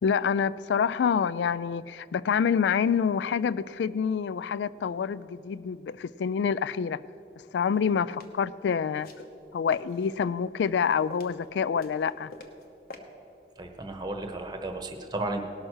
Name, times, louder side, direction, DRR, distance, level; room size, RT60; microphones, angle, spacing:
voice 1, 0.0-7.0 7.5-9.1 9.5-12.3, left 6 dB, 80° left, 18 dB, 0.3 m, -27 dB
sound 1, 7.6-8.3 9.0-10.3 10.6-11.5 11.7-12.6 12.9-13.0, left 2 dB, 55° left, 1.0 m, -47 dB
voice 2, 13.6-15.4, right 2 dB, 25° right, 5 dB, 0.9 m, -34 dB
18.0 x 6.2 x 6.3 m, 2.7 s
head